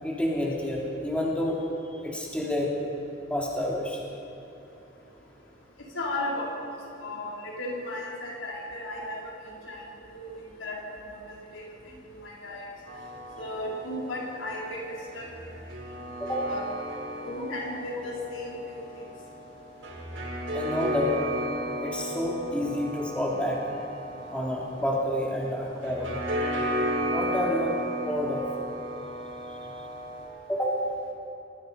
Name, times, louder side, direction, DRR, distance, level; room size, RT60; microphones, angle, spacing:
voice 1, 0.0-1.6 2.0-2.7 3.3-4.0 11.9-12.0 16.2-16.4 20.5-21.3 21.8-23.6 24.3-26.1 27.1-28.4 30.5-30.7, left 1 dB, 5° left, -3 dB, 3.3 m, -29 dB
voice 2, 5.9-6.5 7.0-9.2 9.7-10.3 10.6-11.1 11.5-11.7 12.1-12.6 13.4-15.3 16.4-16.6 17.2-18.8, left 1 dB, 90° left, -3 dB, 4.8 m, -35 dB
sound 1, 12.9-30.3, equal, 80° right, 5.6 m, -34 dB
26.5 x 19.0 x 5.4 m, 3.0 s
head